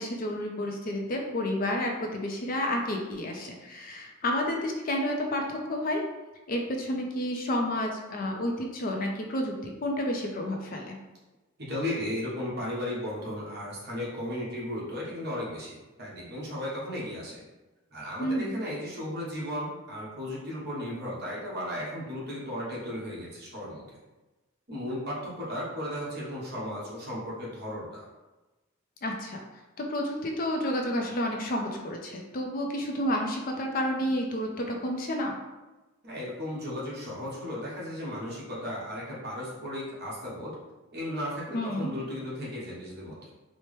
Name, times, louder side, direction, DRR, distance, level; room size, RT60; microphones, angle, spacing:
voice 1, 0.0-6.0 6.5-9.5 9.8-11.0 18.2-18.6 29.0-29.4 29.8-35.3 41.5-41.9, left 1 dB, 45° left, 2 dB, 0.4 m, -30 dB
voice 2, 11.6-17.4 17.9-23.8 24.7-28.0 36.0-40.5 40.9-43.2, left 1 dB, 50° right, -5 dB, 1.1 m, -35 dB
4.3 x 2.1 x 3.2 m, 1.1 s
head